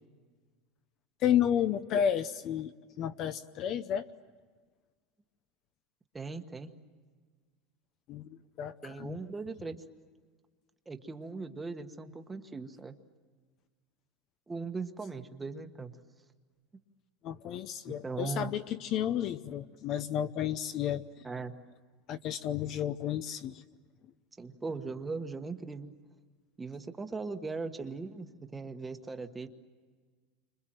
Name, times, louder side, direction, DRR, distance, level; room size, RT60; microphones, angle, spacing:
voice 1, 1.2-4.1 8.1-9.2 17.2-21.2 22.1-23.6, left 9 dB, 35° left, 11 dB, 0.8 m, -32 dB
voice 2, 6.1-6.7 8.8-9.8 10.9-12.9 14.5-15.9 17.9-18.5 21.2-21.5 24.4-25.9 26.6-29.5, right 4 dB, 10° right, 7 dB, 1.3 m, -39 dB
30.0 x 25.5 x 7.7 m, 1.5 s
supercardioid pair, 170°, 0 cm